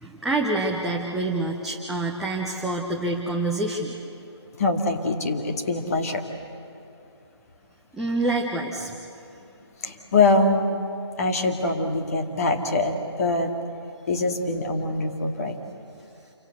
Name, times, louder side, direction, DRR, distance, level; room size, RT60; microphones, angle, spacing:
voice 1, 0.0-4.0 7.9-9.0, right 2 dB, ahead, -2 dB, 0.7 m, -27 dB
voice 2, 4.5-6.2 9.4-9.5 9.8-10.7 11.2-13.5 14.1-15.6, left 3 dB, 35° left, 3 dB, 2.5 m, -23 dB
28.5 x 24.0 x 8.0 m, 2.7 s
figure-of-eight pair, 150°, 15 cm